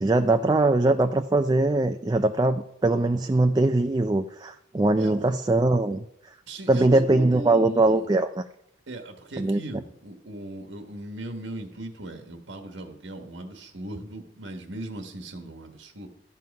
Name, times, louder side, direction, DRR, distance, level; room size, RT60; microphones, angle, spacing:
voice 1, 0.0-6.1 6.7-8.4 9.4-9.6, right 2 dB, 20° right, 8 dB, 0.3 m, -21 dB
voice 2, 4.9-5.3 6.5-8.1 8.9-16.1, right 2 dB, 85° right, 5 dB, 1.4 m, -38 dB
12.5 x 7.6 x 5.3 m, 0.78 s
head